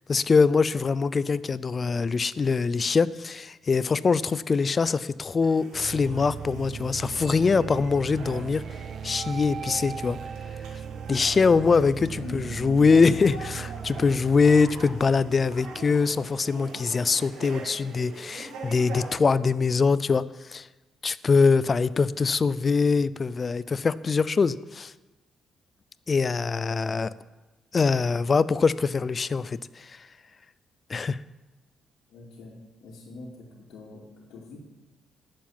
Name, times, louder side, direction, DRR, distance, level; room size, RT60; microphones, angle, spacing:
voice 1, 0.1-8.6 9.0-10.2 11.1-20.2 20.5-20.7 21.0-24.9 26.1-27.1 27.7-30.1 30.9-31.2, left 4 dB, 35° left, 17 dB, 0.5 m, -23 dB
sound 1, 5.4-19.2, right 3 dB, 90° right, 2.0 m, -43 dB
sound 2, 5.7-16.6, right 7 dB, 55° right, 0.4 m, -38 dB
voice 2, 12.2-12.8 32.1-34.6, left 2 dB, 80° left, -6 dB, 2.5 m, -42 dB
11.5 x 7.6 x 9.1 m, 1.1 s
cardioid pair, 90°, 0 cm